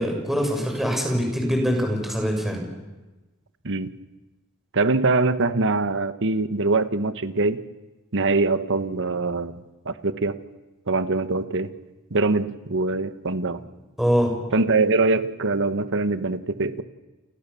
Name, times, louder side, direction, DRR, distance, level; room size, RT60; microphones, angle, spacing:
voice 1, 0.0-2.6 14.0-14.3, equal, ahead, 1 dB, 6.8 m, -23 dB
voice 2, 4.7-7.6 8.1-10.4 10.9-11.7 12.1-13.6 14.5-16.8, right 3 dB, 60° right, 12 dB, 1.3 m, -23 dB
29.5 x 26.5 x 7.1 m, 1.1 s
head